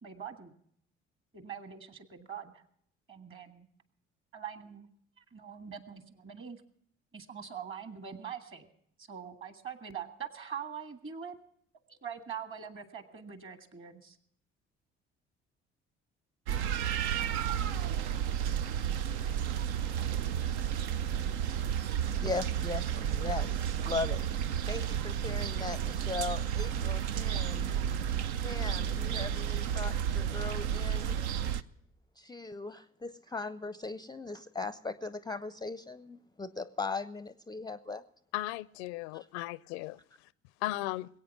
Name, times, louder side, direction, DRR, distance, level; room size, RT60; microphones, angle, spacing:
voice 1, 0.0-0.5 1.3-2.6 3.1-3.7 4.3-4.9 5.3-6.6 7.1-8.7 9.0-11.3 11.9-14.2, right 7 dB, 40° right, 1.7 m, -43 dB
sound 1, 16.5-31.6, right 9 dB, 80° right, 0.5 m, -32 dB
voice 2, 22.2-24.2 24.7-27.7 28.4-31.2 32.2-38.0 39.1-39.4, left 4 dB, 10° left, 0.5 m, -39 dB
voice 3, 38.3-40.0 40.6-41.1, left 18 dB, 70° left, 0.5 m, -36 dB
21.0 x 8.7 x 6.0 m
hypercardioid pair, 50°, 33 cm